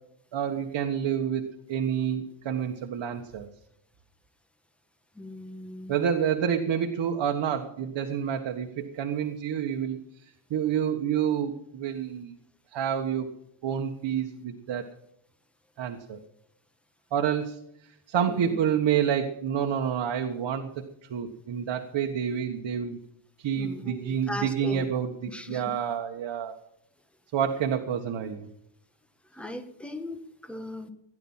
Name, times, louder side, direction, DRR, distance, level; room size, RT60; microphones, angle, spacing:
voice 1, 0.3-1.4 1.7-3.5 5.9-10.0 10.5-12.3 12.7-13.3 13.6-14.8 15.8-16.2 17.1-17.6 18.1-23.0 23.4-26.6 27.3-28.5, right 8 dB, 60° right, 4 dB, 1.5 m, -28 dB
voice 2, 5.1-6.0 18.3-18.6 23.6-24.9 25.3-25.6 29.3-30.9, left 1 dB, ahead, 7 dB, 1.5 m, -38 dB
17.0 x 11.0 x 5.7 m, 0.77 s
cardioid pair, 125°, 49 cm